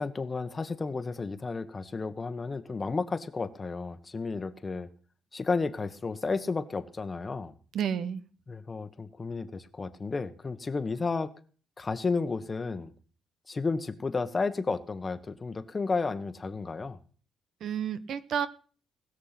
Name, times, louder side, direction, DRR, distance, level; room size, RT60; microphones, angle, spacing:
voice 1, 0.0-4.9 5.3-7.5 8.5-11.3 11.8-12.9 13.5-17.0, left 4 dB, 30° left, 1.2 m, -32 dB
voice 2, 7.7-8.2 17.6-18.5, right 8 dB, 70° right, 1.0 m, -30 dB
19.5 x 6.6 x 5.9 m
cardioid pair, 90°, 0 cm